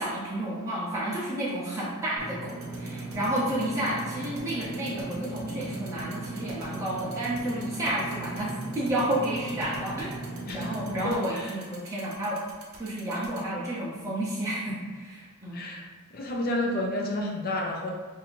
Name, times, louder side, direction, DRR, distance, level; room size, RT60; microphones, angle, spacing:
voice 1, 0.0-8.5 8.7-10.1 10.5-12.4 12.8-15.6, right 1 dB, 15° right, -8 dB, 0.6 m, -31 dB
Engine / Mechanisms, 2.2-11.1, right 2 dB, 65° left, 1.0 m, -38 dB
sound 1, 2.5-13.4, right 6 dB, 70° right, 0.8 m, -48 dB
voice 2, 10.4-11.5 15.5-15.8 16.1-17.9, left 1 dB, 40° left, -1 dB, 0.5 m, -31 dB
2.7 x 2.6 x 4.3 m, 1.5 s
head